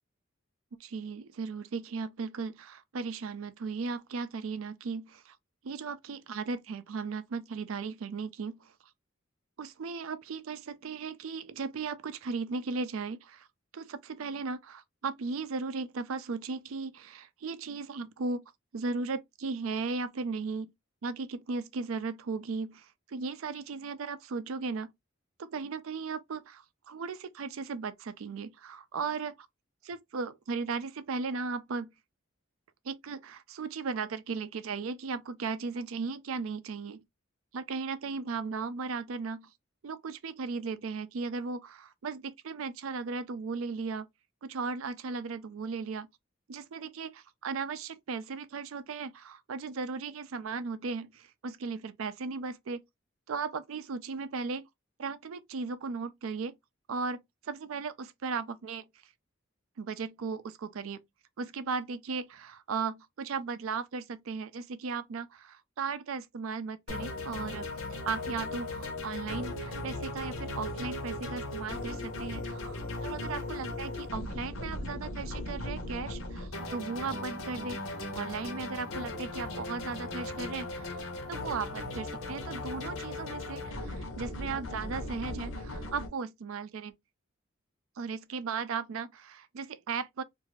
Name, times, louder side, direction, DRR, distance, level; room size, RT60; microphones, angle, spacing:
voice 1, 0.8-5.4 5.6-8.7 9.6-13.5 13.7-18.4 18.7-20.7 21.0-24.9 25.4-29.5 29.9-31.9 32.8-37.0 37.5-39.5 39.8-44.1 44.4-46.1 46.5-52.8 53.3-54.7 55.0-56.5 56.9-58.9 59.8-61.0 61.4-67.7 68.0-81.0 81.3-87.0 88.0-90.2, right 4 dB, 90° right, 0.4 m, -36 dB
sound 1, 66.9-86.1, left 2 dB, 85° left, 0.9 m, -38 dB
2.5 x 2.4 x 3.0 m
head